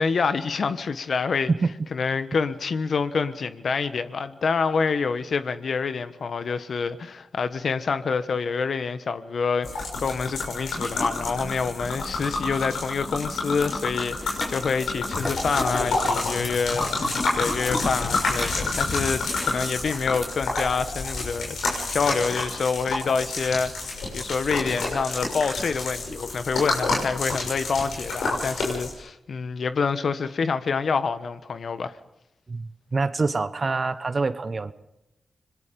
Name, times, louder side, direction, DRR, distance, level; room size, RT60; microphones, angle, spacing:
voice 1, 0.0-1.5 1.9-23.7 24.1-32.0, left 5 dB, 65° left, 1.2 m, -27 dB
sound 1, 9.6-28.9, left 3 dB, 80° left, 6.3 m, -29 dB
sound 2, 14.1-20.2, left 1 dB, 35° left, 5.5 m, -39 dB
voice 2, 32.5-34.7, right 3 dB, 50° right, 1.2 m, -25 dB
25.5 x 21.0 x 5.3 m
supercardioid pair, 45°, 0 cm